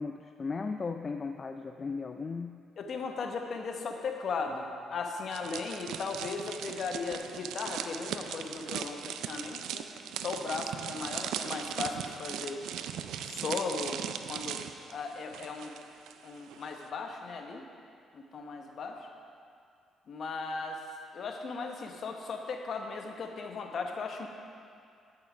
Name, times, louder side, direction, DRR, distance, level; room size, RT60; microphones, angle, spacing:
voice 1, 0.0-2.6, left 4 dB, 35° left, 5 dB, 0.3 m, -36 dB
voice 2, 2.8-9.9 10.2-12.6 13.2-14.0 14.3-14.6 14.9-15.8 16.2-17.6 18.1-19.1 20.1-20.8 21.1-24.3, left 4 dB, 60° left, 3 dB, 1.0 m, -37 dB
sound 1, 5.3-16.1 16.4-16.7, right 9 dB, 85° right, 0.4 m, -39 dB
9.5 x 6.3 x 4.9 m, 2.4 s
cardioid pair, 90°, 0 cm